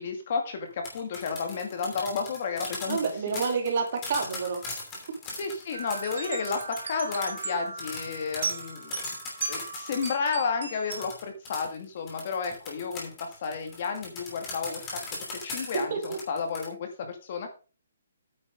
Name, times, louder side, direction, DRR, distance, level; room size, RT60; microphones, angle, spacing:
voice 1, 0.0-3.4 5.4-9.0 9.5-15.0 15.4-17.5, left 5 dB, 35° left, 5 dB, 2.0 m, -32 dB
sound 1, 0.7-10.3 10.9-16.7, left 3 dB, 15° left, 2.9 m, -39 dB
voice 2, 2.9-4.6 15.9-16.2, right 5 dB, 35° right, 3 dB, 2.7 m, -28 dB
sound 2, 5.7-11.1, right 4 dB, 55° right, 2.9 m, -37 dB
9.4 x 7.2 x 5.2 m, 0.34 s
hypercardioid pair, 175°, 0 cm